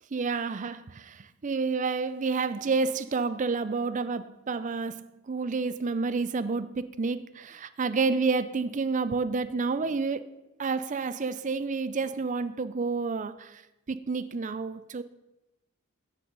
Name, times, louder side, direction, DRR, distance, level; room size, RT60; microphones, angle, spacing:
voice 1, 0.1-10.3 10.6-13.6 13.9-15.0, right 4 dB, 35° right, 0.4 m, -29 dB
9.3 x 8.3 x 5.3 m
head